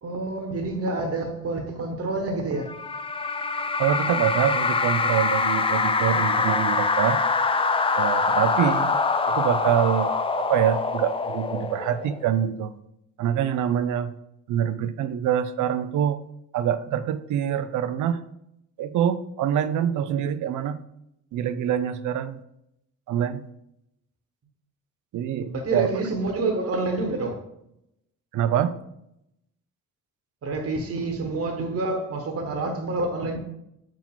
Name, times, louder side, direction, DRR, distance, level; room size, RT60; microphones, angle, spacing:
voice 1, 0.0-2.7 25.3-27.4 30.4-33.4, right 2 dB, 45° right, 1.3 m, -28 dB
sound 1, 2.7-12.3, left 4 dB, 15° left, 0.4 m, -24 dB
voice 2, 3.8-7.2 8.0-8.9 9.3-12.7 13.2-14.1 14.5-16.2 16.5-18.2 18.8-20.8 21.3-22.4 23.1-23.4 25.1-25.9 28.3-28.8, right 10 dB, 65° right, 0.6 m, -25 dB
5.7 x 5.0 x 3.7 m
supercardioid pair, 65°, 32 cm